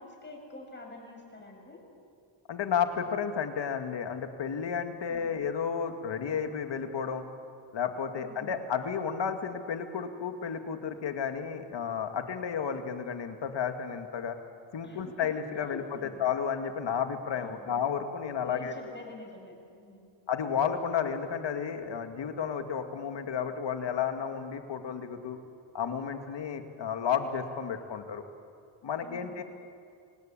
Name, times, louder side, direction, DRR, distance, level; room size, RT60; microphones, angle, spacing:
voice 1, 0.0-1.8 5.1-5.3 8.2-8.6 14.8-15.1 15.6-16.2 17.4-17.7 18.4-20.1 29.0-29.4, left 2 dB, 20° left, 1 dB, 7.4 m, -48 dB
voice 2, 2.5-7.2 7.7-14.4 14.7-18.7 20.3-25.4 25.7-28.2 28.8-29.4, left 7 dB, 65° left, 7 dB, 2.3 m, -32 dB
27.0 x 19.0 x 8.8 m, 2.3 s
cardioid pair, 80°, 47 cm